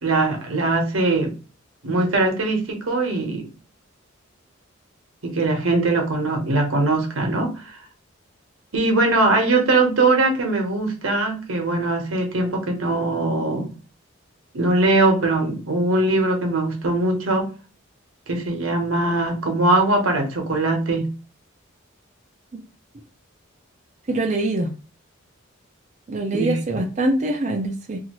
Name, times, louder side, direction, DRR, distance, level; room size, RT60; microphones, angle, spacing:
voice 1, 0.0-1.3 1.8-3.5 5.2-7.5 8.7-13.7 14.5-17.5 18.3-21.1 26.3-26.6, right 2 dB, 85° right, 3 dB, 0.9 m, -21 dB
voice 2, 24.1-24.7 26.1-28.0, right 2 dB, 35° right, 2 dB, 0.4 m, -24 dB
2.7 x 2.4 x 2.9 m, 0.34 s
head